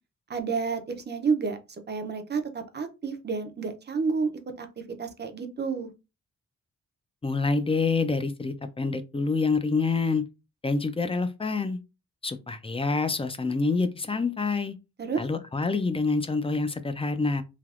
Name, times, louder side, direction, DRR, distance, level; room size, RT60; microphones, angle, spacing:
voice 1, 0.3-1.6 1.9-4.3 4.6-5.9 15.0-15.2, right 5 dB, 35° right, 0.5 m, -30 dB
voice 2, 7.2-10.2 10.6-11.8 12.2-14.7 15.2-17.4, left 4 dB, 20° left, 0.3 m, -27 dB
3.4 x 2.8 x 2.4 m
wide cardioid pair, 135°, 30 cm